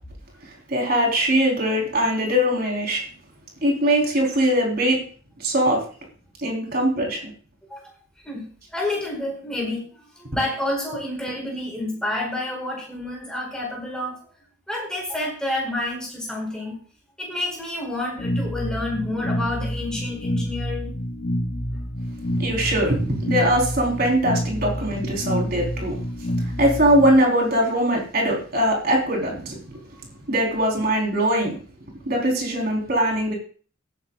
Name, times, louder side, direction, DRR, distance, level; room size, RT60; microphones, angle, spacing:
voice 1, 0.7-3.0 3.6-5.0 5.4-5.8 6.4-7.3 22.4-26.0 26.4-29.6 30.3-31.6 32.1-33.3, right 1 dB, 45° right, -1 dB, 4.1 m, -21 dB
voice 2, 8.2-14.2 14.7-16.8 17.2-21.0 29.9-30.0, left 1 dB, 5° left, -2 dB, 4.6 m, -29 dB
sound 1, 18.2-27.2, equal, 50° left, 1.0 m, -28 dB
18.0 x 10.0 x 2.4 m, 0.41 s
head